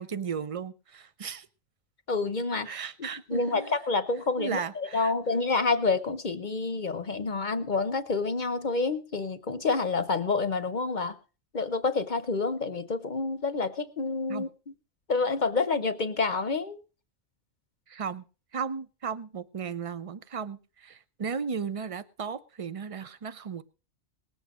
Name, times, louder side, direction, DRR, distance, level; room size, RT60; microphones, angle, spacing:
voice 1, 0.0-1.5 2.7-3.8 4.4-5.1 14.3-14.5 17.9-18.2 18.5-23.6, right 6 dB, 35° right, 14 dB, 0.7 m, -35 dB
voice 2, 2.1-11.2 11.5-14.7 15.1-16.8, left 3 dB, 45° left, 11 dB, 0.9 m, -28 dB
19.5 x 8.0 x 5.0 m, 0.35 s
omnidirectional pair, 1.2 m